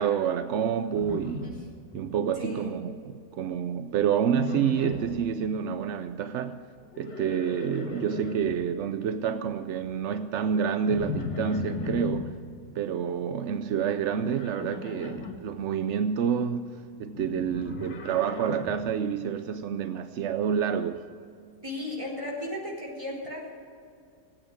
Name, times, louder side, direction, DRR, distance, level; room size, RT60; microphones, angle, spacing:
voice 1, 0.0-1.5 1.9-6.6 7.0-12.4 12.7-21.1, right 7 dB, 70° right, 10 dB, 0.7 m, -28 dB
Livestock farm animals working animals, 0.9-2.2 2.4-3.0 4.3-5.2 6.8-8.6 10.9-12.3 14.2-15.4 17.1-18.9, left 5 dB, 85° left, 2.1 m, -37 dB
voice 2, 2.4-2.7 21.6-23.5, left 1 dB, 20° right, -3 dB, 4.2 m, -35 dB
17.0 x 8.8 x 8.8 m, 2.3 s
omnidirectional pair, 1.8 m